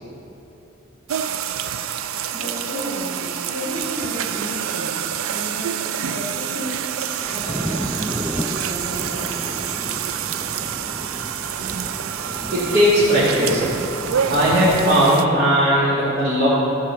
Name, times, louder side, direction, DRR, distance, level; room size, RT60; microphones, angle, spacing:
sound 1, 1.1-15.3, right 9 dB, 75° right, 0.4 m, -27 dB
voice 1, 2.3-6.9 7.2-9.5, equal, 50° left, -7 dB, 3.1 m, -33 dB
sound 2, 7.2-15.0, equal, 5° right, 0.3 m, -33 dB
voice 2, 12.5-13.7 14.3-16.5, equal, 45° right, -12 dB, 2.5 m, -17 dB
14.0 x 6.0 x 7.1 m, 3.0 s
head